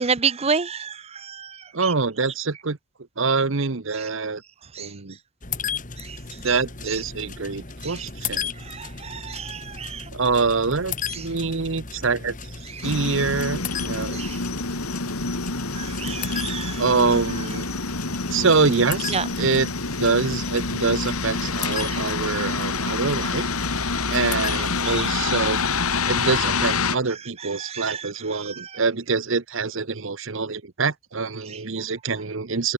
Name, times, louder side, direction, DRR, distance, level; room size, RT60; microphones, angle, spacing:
voice 1, 0.0-1.6 1.8-1.9 4.7-4.9 6.0-6.2 7.8-8.0 8.7-10.0 14.1-14.4 15.8-16.8 19.1-19.2 24.8-25.0 27.6-28.1 28.5-28.7, right 5 dB, 30° right, 0.6 m, -29 dB
voice 2, 1.7-2.8 3.2-4.4 4.8-5.2 6.4-8.5 10.1-12.4 12.8-14.2 16.8-17.7 18.3-19.7 20.0-23.4 24.1-32.7, right 4 dB, 60° right, 0.9 m, -25 dB
sound 1, 5.4-25.1, left 5 dB, 35° left, 2.7 m, -36 dB
sound 2, 12.8-27.0, left 4 dB, 75° left, 3.0 m, -27 dB
head